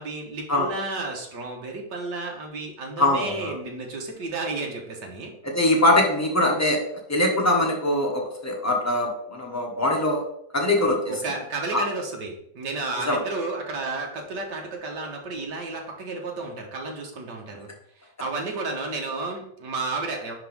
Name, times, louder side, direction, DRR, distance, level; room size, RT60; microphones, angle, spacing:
voice 1, 0.0-5.3 11.1-17.7 18.0-20.3, right 3 dB, 75° right, 1 dB, 1.9 m, -32 dB
voice 2, 3.0-3.5 5.4-6.8 7.1-10.2 10.5-11.0 11.7-11.8 13.1-13.2, left 1 dB, 10° left, 0 dB, 1.0 m, -22 dB
10.5 x 3.6 x 3.5 m, 0.72 s
omnidirectional pair, 1.9 m